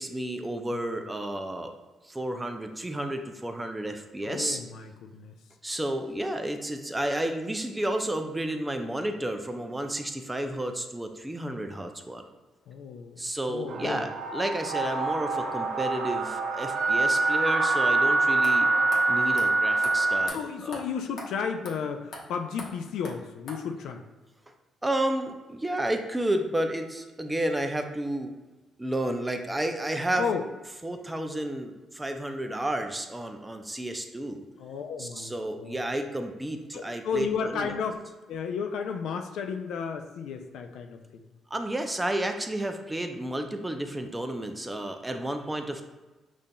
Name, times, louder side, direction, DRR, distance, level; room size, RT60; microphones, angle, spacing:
voice 1, 0.0-1.7 2.1-4.6 5.6-12.2 13.2-18.7 19.1-20.4 20.6-20.8 24.8-28.3 28.8-30.3 30.8-34.4 35.0-37.7 41.5-45.8, right 1 dB, 10° right, 6 dB, 0.4 m, -31 dB
voice 2, 4.2-5.4 12.7-14.1 20.2-24.1 30.2-30.5 34.6-35.8 36.7-38.0 38.3-41.3, left 6 dB, 80° left, 6 dB, 0.3 m, -33 dB
sound 1, 13.7-20.3, right 3 dB, 75° right, 0.5 m, -25 dB
sound 2, 18.0-18.1 18.4-18.5 18.9-19.0 19.4-19.5 19.8-19.9 20.3-20.4 20.7-20.8 21.2-21.3 21.6-21.8 22.1-22.2 22.6-22.7 23.0-23.1 23.5-23.6, left 2 dB, 65° left, 0.9 m, -39 dB
5.4 x 2.5 x 2.2 m, 1.2 s
cardioid pair, 90°, 0 cm